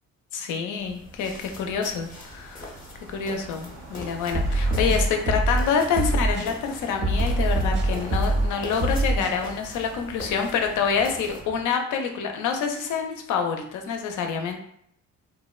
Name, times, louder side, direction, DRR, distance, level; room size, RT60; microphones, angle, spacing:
voice 1, 0.3-2.7 3.1-14.6, left 6 dB, 80° left, 4 dB, 0.5 m, -27 dB
sound 1, 0.8-11.4, left 1 dB, 25° left, 0.6 m, -43 dB
sound 2, 1.2-11.7, right 1 dB, 80° right, 0.8 m, -43 dB
sound 3, 4.3-5.6 6.0-6.5 7.0-8.5 8.8-9.3, right 1 dB, 40° right, 0.5 m, -23 dB
2.7 x 2.1 x 2.3 m, 0.67 s
cardioid pair, 90°, 30 cm